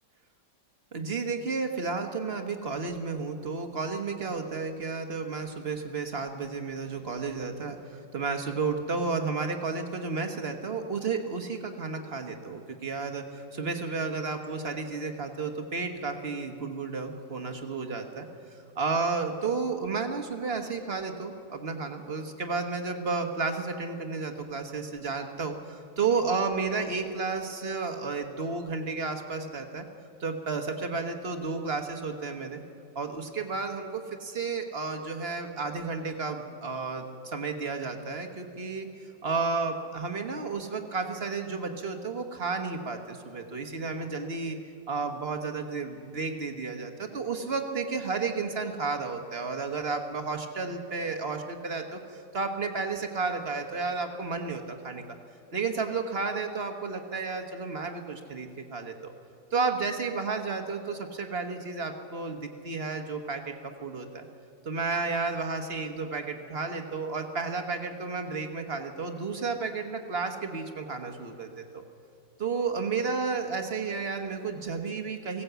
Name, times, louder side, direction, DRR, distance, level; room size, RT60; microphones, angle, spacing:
voice 1, 0.9-18.3 18.5-29.8 30.2-32.6 32.9-44.6 44.9-55.0 55.5-59.1 59.5-64.3 64.6-71.8 72.4-75.4, right 4 dB, 40° right, 5 dB, 1.3 m, -32 dB
19.5 x 16.5 x 8.0 m, 2.5 s
omnidirectional pair, 1.9 m